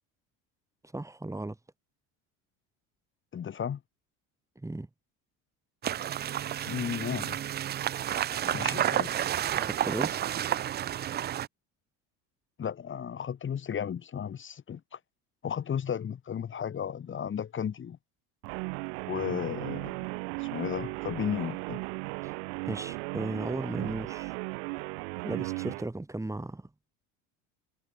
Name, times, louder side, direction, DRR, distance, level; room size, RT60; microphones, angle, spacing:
voice 1, 0.9-1.6 4.6-4.9 8.7-8.8 9.6-10.2 22.2-22.3 22.7-24.3 25.2-26.7, right 2 dB, 10° right, 5.5 m, -36 dB
voice 2, 3.3-3.8 6.7-7.4 8.4-9.2 12.6-15.0 15.4-18.0 19.1-20.0 20.4-21.8, left 8 dB, 35° left, 3.0 m, -34 dB
sound 1, 5.8-11.5, right 11 dB, 30° right, 0.4 m, -30 dB
Guitar, 18.4-25.9, right 36 dB, 90° right, 0.9 m, -36 dB
cardioid pair, 120°, 36 cm